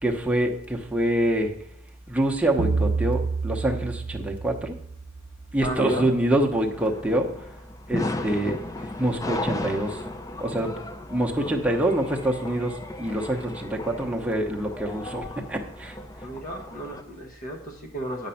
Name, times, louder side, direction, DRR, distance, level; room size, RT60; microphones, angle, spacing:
voice 1, 0.0-1.5 2.1-4.7 5.5-7.3 7.9-8.6 9.0-10.0 10.4-10.7 11.1-16.0, right 1 dB, 5° right, 1 dB, 0.9 m, -25 dB
sound 1, 2.6-5.3, right 4 dB, 60° right, 0.6 m, -28 dB
voice 2, 5.6-6.1 16.2-18.3, equal, 45° left, 1 dB, 1.0 m, -32 dB
sound 2, 6.5-17.0, left 2 dB, 20° left, 0.4 m, -35 dB
8.8 x 5.2 x 5.7 m, 0.71 s
head